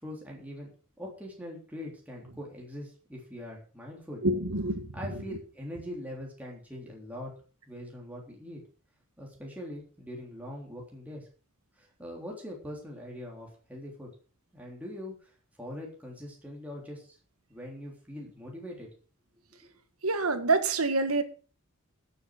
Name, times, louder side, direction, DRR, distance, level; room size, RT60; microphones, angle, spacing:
voice 1, 0.0-0.7 1.0-4.2 4.9-7.3 7.7-8.6 9.2-11.3 11.8-14.1 14.5-15.3 15.6-17.1 17.5-18.9 19.5-19.7, left 1 dB, 5° right, 3.4 m, -42 dB
voice 2, 4.2-5.2 20.0-21.2, right 3 dB, 85° right, 1.8 m, -27 dB
13.0 x 7.1 x 6.6 m
head